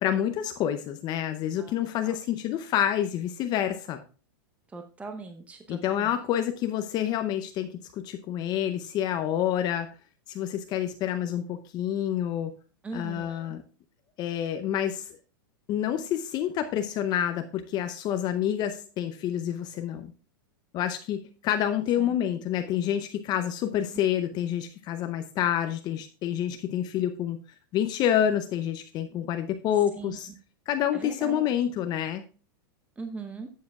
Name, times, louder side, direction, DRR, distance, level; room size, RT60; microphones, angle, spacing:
voice 1, 0.0-4.0 5.7-9.9 10.3-12.5 12.9-13.6 14.2-15.1 15.7-20.1 20.7-27.4 27.7-30.3 30.7-32.2, left 10 dB, 35° left, 8 dB, 0.7 m, -28 dB
voice 2, 4.7-6.1 12.8-13.6 22.0-22.1 29.9-30.2 30.9-31.4 33.0-33.5, right 3 dB, 10° right, 6 dB, 0.8 m, -40 dB
11.5 x 7.5 x 2.3 m, 0.36 s
hypercardioid pair, 125°, 12 cm